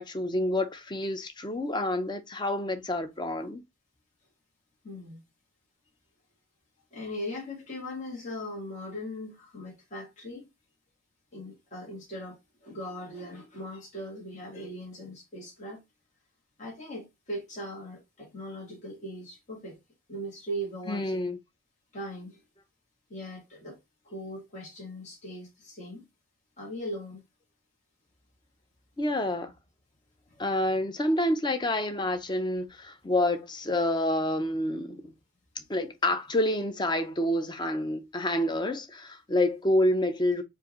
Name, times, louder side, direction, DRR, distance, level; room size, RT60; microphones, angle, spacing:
voice 1, 0.0-3.6 20.9-21.4 29.0-29.5 30.4-35.1 35.7-40.4, left 1 dB, 20° left, 0.5 m, -28 dB
voice 2, 4.8-5.2 6.9-10.5 11.3-15.8 16.6-19.8 20.1-21.2 21.9-22.4 23.1-23.8 24.0-26.1 26.6-27.2 30.3-30.4, equal, 35° left, 1.5 m, -39 dB
4.7 x 2.6 x 3.0 m
head